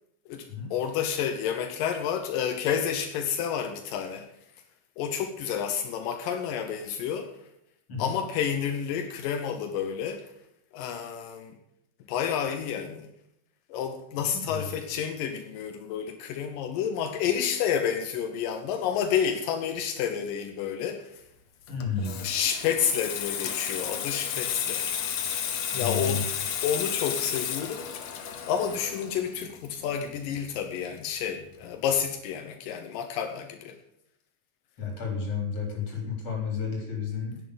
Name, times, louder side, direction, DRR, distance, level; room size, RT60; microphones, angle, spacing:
voice 1, 0.3-4.3 5.0-7.3 8.0-10.3 10.7-11.6 12.1-13.1 13.7-21.2 22.0-24.9 25.7-26.3 26.6-27.9 28.5-33.8, left 8 dB, 85° left, 6 dB, 2.6 m, -30 dB
voice 2, 14.2-14.7 21.7-22.3 25.7-26.2 34.8-37.4, left 5 dB, 45° left, 0 dB, 4.9 m, -32 dB
Water tap faucet / Sink (filling or washing), 21.7-31.0 31.3-31.5, left 8 dB, 65° left, 2.1 m, -33 dB
10.5 x 8.4 x 8.6 m, 0.78 s
omnidirectional pair, 3.8 m